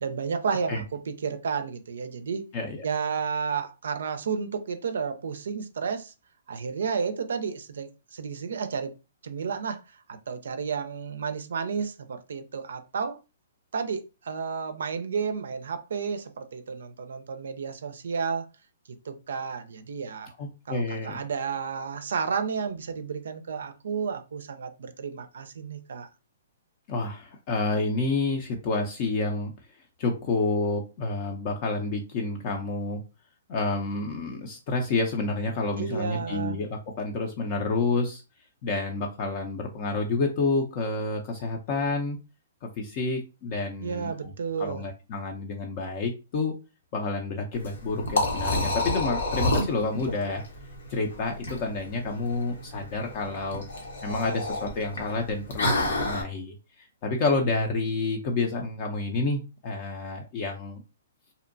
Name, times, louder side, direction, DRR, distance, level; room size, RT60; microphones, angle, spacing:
voice 1, 0.0-2.5 2.8-6.1 6.5-8.9 9.2-13.2 13.7-18.5 19.0-20.3 20.7-26.1 35.8-36.6 43.8-44.8, right 6 dB, 70° right, 0.4 m, -32 dB
voice 2, 2.5-2.8 20.4-21.2 26.9-29.5 30.0-33.0 33.5-36.7 37.0-38.2 38.6-42.2 42.6-44.3 44.6-46.5 46.9-50.4 50.9-53.6 54.0-60.8, left 3 dB, 40° left, 0.5 m, -29 dB
Liquid, 47.5-56.2, left 2 dB, 75° left, 0.9 m, -29 dB
2.7 x 2.1 x 2.5 m
hypercardioid pair, 130°, 0 cm